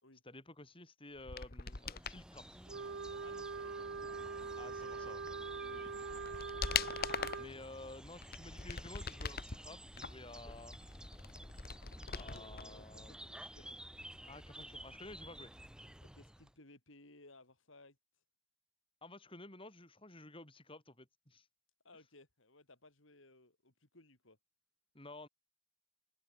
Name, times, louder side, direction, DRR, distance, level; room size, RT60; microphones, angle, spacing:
voice 1, 0.2-2.5 4.6-5.2 7.4-10.8 12.1-13.1 13.5-13.7 14.3-15.5 19.0-21.5 24.9-25.3, left 2 dB, 25° left, 7.1 m, -52 dB
sound 1, 1.2-2.2 5.3-5.4 5.8-7.5 8.1-9.6 10.0-12.6 12.9-13.0, left 6 dB, 50° left, 1.6 m, -41 dB
sound 2, 1.7-16.5, right 1 dB, 5° right, 7.7 m, -53 dB
Wind instrument woodwind instrument, 2.7-7.5, right 4 dB, 60° right, 0.7 m, -43 dB
voice 2, 3.2-5.2 5.6-6.3 12.2-13.8 16.0-18.0 21.8-24.4, left 2 dB, 70° left, 4.7 m, -61 dB
open air
head